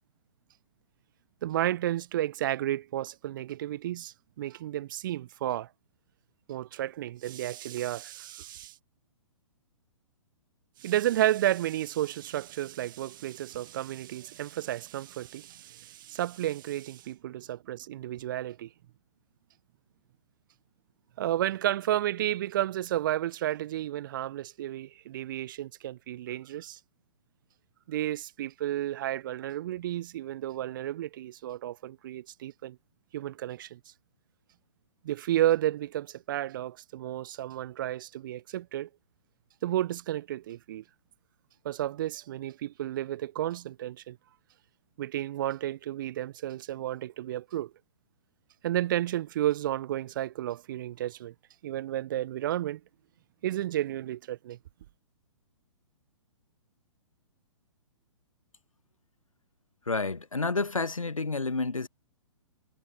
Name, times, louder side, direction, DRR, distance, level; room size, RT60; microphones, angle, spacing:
voice 1, 1.4-5.7 6.5-8.7 10.8-18.7 21.2-26.8 27.9-32.8 33.1-33.8 35.0-38.9 39.6-40.8 41.6-44.2 45.0-47.7 48.6-51.3 51.6-52.8 53.4-54.6, right 13 dB, 40° right, 0.5 m, -32 dB
voice 2, 59.9-61.9, left 3 dB, 85° left, 0.8 m, -29 dB
figure-of-eight pair, 120°, 17 cm